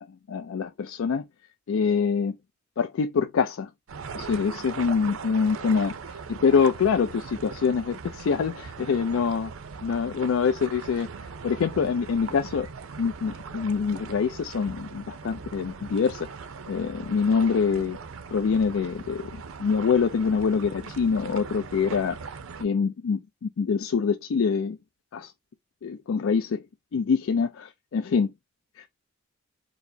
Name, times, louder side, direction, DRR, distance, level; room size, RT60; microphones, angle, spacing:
voice 1, 0.3-1.3 1.7-2.4 2.8-3.7 4.1-5.9 6.3-9.5 9.8-11.1 11.4-12.7 13.0-16.3 16.7-18.0 18.3-22.2 22.6-24.8 25.1-25.3 25.8-26.6 26.9-28.3 28.8-29.0, left 5 dB, 75° left, 0.4 m, -25 dB
sound 1, 3.9-22.6, right 5 dB, 85° right, 0.6 m, -40 dB
4.6 x 2.0 x 2.6 m
head